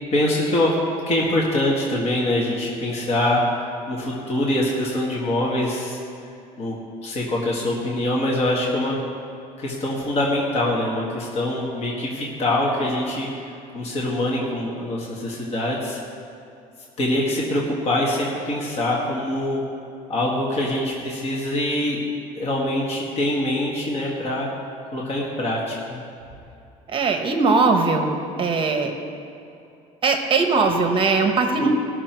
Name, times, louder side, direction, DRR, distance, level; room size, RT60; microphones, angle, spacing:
voice 1, 0.1-0.8 1.1-6.0 6.6-6.8 7.0-9.0 9.6-16.0 17.0-19.6 20.1-22.0 22.3-24.5 24.9-26.0 31.6-31.7, left 1 dB, 40° left, -4 dB, 1.7 m, -24 dB
voice 2, 26.9-28.9 30.0-31.7, right 4 dB, 35° right, 4 dB, 1.1 m, -20 dB
19.5 x 6.8 x 4.5 m, 2.6 s
cardioid pair, 145°, 16 cm